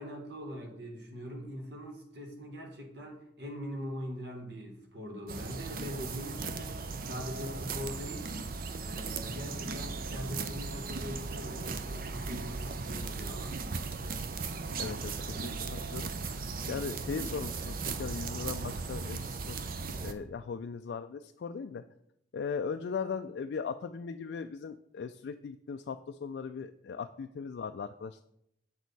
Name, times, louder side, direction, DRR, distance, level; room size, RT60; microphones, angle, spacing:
voice 1, 0.0-8.3 8.8-13.6, equal, 65° right, 2 dB, 1.6 m, -42 dB
sound 1, 5.3-20.1, right 4 dB, 50° right, 0.5 m, -37 dB
voice 2, 14.8-19.6 19.9-21.8 22.3-28.2, left 5 dB, 70° left, 8 dB, 0.3 m, -38 dB
7.3 x 6.3 x 4.0 m, 0.75 s
head